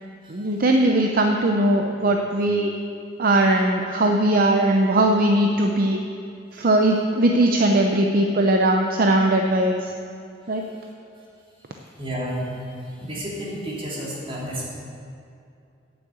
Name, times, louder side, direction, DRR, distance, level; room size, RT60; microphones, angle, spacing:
voice 1, 0.3-2.7 3.2-6.0 6.5-9.9 10.5-10.7, right 1 dB, 50° right, 3 dB, 0.6 m, -19 dB
voice 2, 12.0-14.7, equal, 30° right, -6 dB, 2.9 m, -31 dB
9.0 x 7.6 x 8.2 m, 2.5 s
head